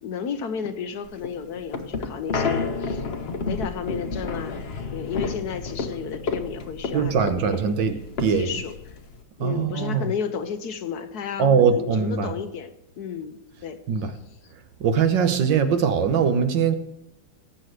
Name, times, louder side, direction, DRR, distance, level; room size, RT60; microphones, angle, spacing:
voice 1, 0.0-3.0 3.4-4.6 4.9-7.7 8.3-8.7 9.4-13.8, left 7 dB, 65° left, 1.2 m, -32 dB
sound 1, 1.1-9.2, left 4 dB, 45° left, 1.0 m, -31 dB
voice 2, 6.9-8.6 9.4-10.1 11.4-12.3 13.9-14.1 14.8-16.8, right 6 dB, 80° right, 1.7 m, -21 dB
18.0 x 8.0 x 3.3 m
omnidirectional pair, 2.0 m